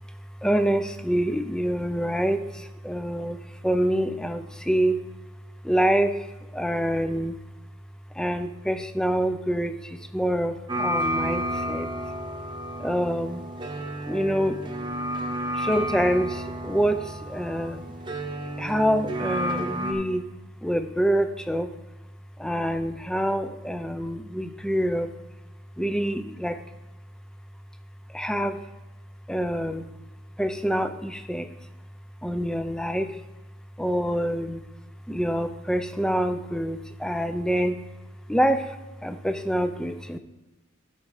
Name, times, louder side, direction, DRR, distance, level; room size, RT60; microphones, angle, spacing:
voice 1, 0.4-3.4 3.6-5.0 5.6-6.3 6.5-7.4 8.2-11.9 12.8-13.4 14.1-14.6 15.5-17.8 18.6-20.2 20.6-21.7 22.4-25.1 25.8-26.6 28.1-28.6 29.3-29.8 30.4-31.5 32.2-33.2 33.8-34.6 35.1-37.8 38.3-38.8 39.0-40.2, equal, 5° left, 9 dB, 0.5 m, -26 dB
sound 1, 10.7-19.9, right 1 dB, 25° right, 0.9 m, -31 dB
13.0 x 4.7 x 5.0 m, 1.1 s
head